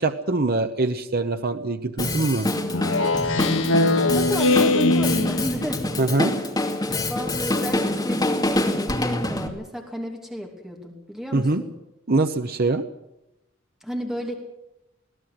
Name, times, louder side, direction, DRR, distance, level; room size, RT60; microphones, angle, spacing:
voice 1, 0.0-2.5 6.0-6.3 11.3-11.6 12.1-12.8, right 2 dB, 50° right, 8 dB, 1.0 m, -23 dB
Drum kit, 2.0-9.5, left 1 dB, 20° left, 2.5 m, -26 dB
Speech synthesizer, 2.7-5.8, left 2 dB, 75° left, 1.2 m, -21 dB
voice 2, 3.8-5.9 7.1-11.7 13.8-14.3, equal, 5° right, 1 dB, 2.8 m, -32 dB
21.5 x 17.0 x 8.0 m, 0.89 s
head